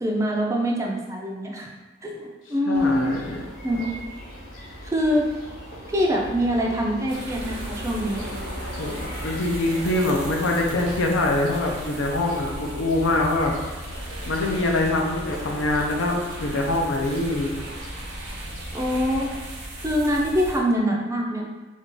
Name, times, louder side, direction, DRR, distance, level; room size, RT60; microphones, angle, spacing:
voice 1, 0.0-1.7 2.0-3.1 3.6-3.8 4.8-5.3 5.9-8.3 18.7-19.3 19.8-21.4, equal, 15° right, -1 dB, 0.3 m, -24 dB
voice 2, 2.7-3.4 8.8-13.6 14.3-17.5, left 2 dB, 85° left, 0 dB, 0.5 m, -24 dB
sound 1, 2.7-19.5, equal, 45° left, 0.7 m, -39 dB
sound 2, 7.1-20.6, right 1 dB, 60° right, 0.7 m, -37 dB
2.5 x 2.3 x 3.7 m, 1.3 s
head